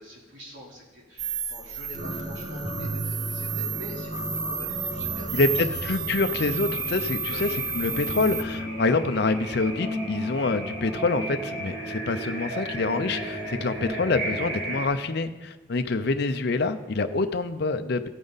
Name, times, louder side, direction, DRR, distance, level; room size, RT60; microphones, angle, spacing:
voice 1, 0.0-5.9 7.3-7.4 9.0-9.3, equal, 70° right, -4 dB, 3.5 m, -46 dB
sound 1, 1.2-8.4, right 6 dB, 20° right, 0.6 m, -32 dB
sound 2, 1.9-14.8, right 1 dB, 50° right, 3.9 m, -34 dB
voice 2, 5.3-7.5 7.7-18.1, left 3 dB, 55° left, 8 dB, 0.5 m, -26 dB
15.5 x 8.9 x 4.0 m, 1.2 s
head